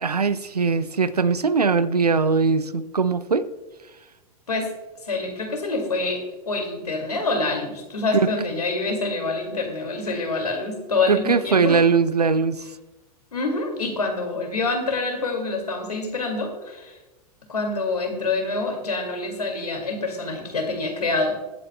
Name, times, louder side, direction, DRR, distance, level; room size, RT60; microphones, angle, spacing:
voice 1, 0.0-3.5 8.1-8.3 11.1-12.6, right 5 dB, 90° right, 15 dB, 0.6 m, -20 dB
voice 2, 5.0-11.8 13.3-16.9 17.5-21.4, left 3 dB, 80° left, 3 dB, 2.3 m, -26 dB
21.0 x 8.3 x 2.2 m, 1.1 s
figure-of-eight pair, 95°, 20 cm